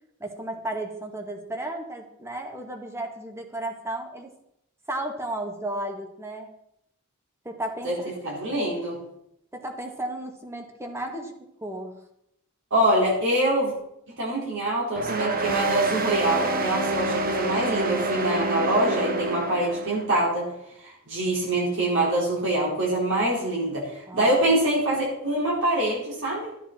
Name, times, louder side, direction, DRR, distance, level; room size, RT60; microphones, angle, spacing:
voice 1, 0.2-4.3 4.9-6.5 7.5-8.1 9.5-11.3 11.6-12.0 24.1-24.6, right 1 dB, 10° right, 3 dB, 1.8 m, -34 dB
voice 2, 8.2-9.0 12.7-13.7 14.2-20.5 20.8-26.5, right 1 dB, 60° right, -4 dB, 4.6 m, -24 dB
sound 1, 15.0-20.1, right 2 dB, 45° right, 1.2 m, -27 dB
13.5 x 10.0 x 4.4 m, 0.78 s
head